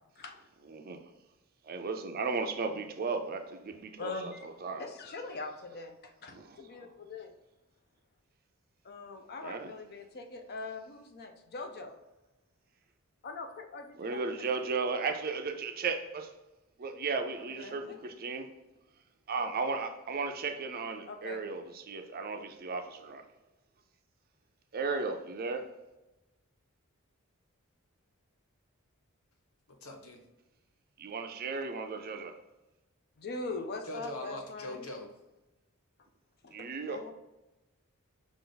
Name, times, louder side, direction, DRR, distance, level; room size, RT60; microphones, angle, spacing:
voice 1, 0.7-1.0 1.6-4.8 6.3-6.9 9.4-9.7 14.0-16.3 16.8-18.5 19.3-23.2 24.7-25.7 31.0-32.4 36.5-37.0, right 4 dB, 45° right, 0.5 m, -35 dB
voice 2, 4.0-4.5 4.8-7.3 8.8-11.9 13.2-14.5 14.8-14.9 17.6-18.0 21.1-21.4 33.2-34.9 36.4-36.6 36.9-37.1, left 3 dB, 45° left, 0.6 m, -42 dB
voice 3, 29.8-30.2 33.9-35.1, left 1 dB, 70° left, 0.9 m, -41 dB
5.3 x 2.5 x 3.9 m
head